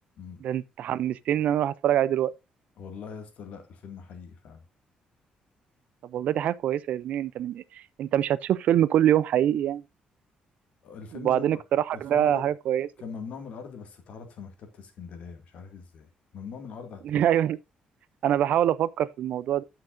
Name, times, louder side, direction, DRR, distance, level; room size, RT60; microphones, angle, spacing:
voice 1, 0.4-2.3 6.0-9.8 11.1-12.9 17.0-17.6 18.2-19.6, right 11 dB, 60° right, 0.5 m, -25 dB
voice 2, 2.8-4.6 10.8-11.6 11.9-12.5 13.0-17.3, left 6 dB, 55° left, 2.1 m, -42 dB
15.5 x 5.8 x 2.6 m
cardioid pair, 175°, 3 cm